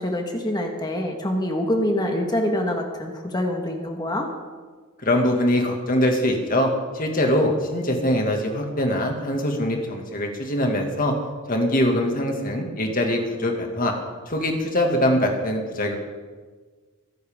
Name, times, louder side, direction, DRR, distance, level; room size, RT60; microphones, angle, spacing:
voice 1, 0.0-4.3, left 1 dB, 20° left, 2 dB, 1.5 m, -25 dB
voice 2, 5.0-11.1 11.5-13.9 14.3-16.0, left 1 dB, 40° left, 2 dB, 2.1 m, -23 dB
23.0 x 10.5 x 3.7 m, 1.4 s
head